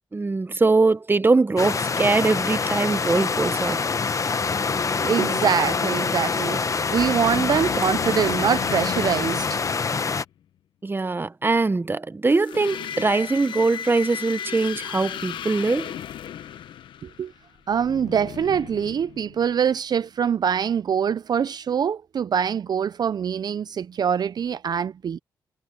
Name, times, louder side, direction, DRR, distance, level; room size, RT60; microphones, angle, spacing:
voice 1, 0.1-3.8 10.8-15.9, right 3 dB, 25° right, 0.9 m, -22 dB
sound 1, 1.6-7.1, left 6 dB, 65° left, 3.9 m, -50 dB
sound 2, 1.6-10.2, left 5 dB, 40° left, 1.0 m, -25 dB
voice 2, 5.0-9.6 17.0-17.3 17.7-25.2, right 7 dB, 55° right, 0.5 m, -24 dB
sound 3, 7.0-10.3 12.3-19.6, left 9 dB, 85° left, 0.9 m, -35 dB
cardioid pair, 65°, 8 cm